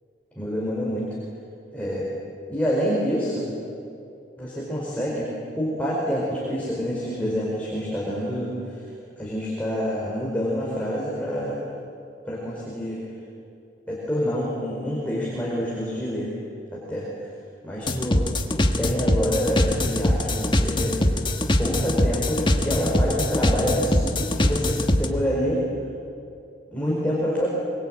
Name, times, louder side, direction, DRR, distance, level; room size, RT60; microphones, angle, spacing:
voice 1, 0.3-1.1 1.7-2.1 2.5-3.5 4.4-8.8 9.2-11.6 12.2-13.0 13.9-16.3 16.7-17.1 17.6-18.5 18.8-21.3 21.6-25.6 26.7-27.5, equal, 10° left, -5 dB, 4.8 m, -27 dB
sound 1, 17.9-25.1, left 1 dB, 25° left, 1.5 m, -22 dB
25.0 x 22.5 x 9.0 m, 2.6 s
head